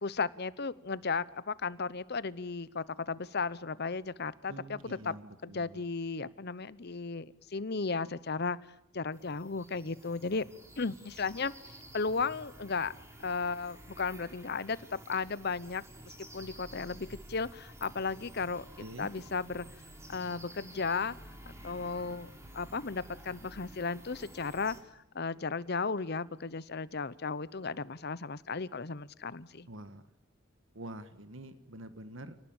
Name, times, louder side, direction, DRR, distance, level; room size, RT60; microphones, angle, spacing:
voice 1, 0.0-4.5 4.8-5.1 5.4-8.6 8.9-10.4 10.8-11.5 11.9-12.9 13.2-15.8 16.3-18.6 19.0-19.7 20.1-21.1 21.6-24.8 25.1-29.7, left 4 dB, 50° left, 18 dB, 0.9 m, -35 dB
voice 2, 4.5-5.8 18.8-19.1 29.7-30.0 30.7-32.5, right 1 dB, 70° right, 11 dB, 1.5 m, -46 dB
sound 1, 9.1-24.8, right 1 dB, 15° right, 3.4 m, -51 dB
28.5 x 19.0 x 8.9 m, 0.87 s
head